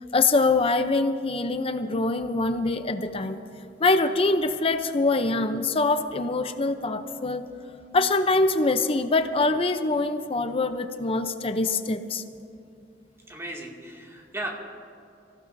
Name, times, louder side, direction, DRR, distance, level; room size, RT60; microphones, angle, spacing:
voice 1, 0.1-3.4 3.8-7.5 7.9-12.2, left 3 dB, 30° left, 9 dB, 0.6 m, -24 dB
voice 2, 13.3-14.5, right 1 dB, 15° right, -2 dB, 2.2 m, -36 dB
25.5 x 15.5 x 2.7 m, 2.7 s
head